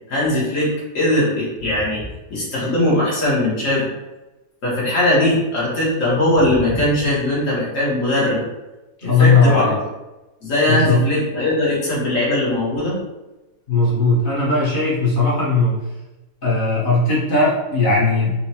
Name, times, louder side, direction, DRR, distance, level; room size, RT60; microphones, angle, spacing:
voice 1, 0.1-2.0 2.3-3.9 4.6-8.4 9.0-9.7 10.4-13.0, left 1 dB, 60° left, -7 dB, 1.5 m, -20 dB
voice 2, 9.0-9.7 10.7-11.0 13.7-15.8 16.4-18.3, left 3 dB, 40° left, -6 dB, 1.0 m, -17 dB
4.5 x 2.2 x 2.8 m, 1.1 s
omnidirectional pair, 1.6 m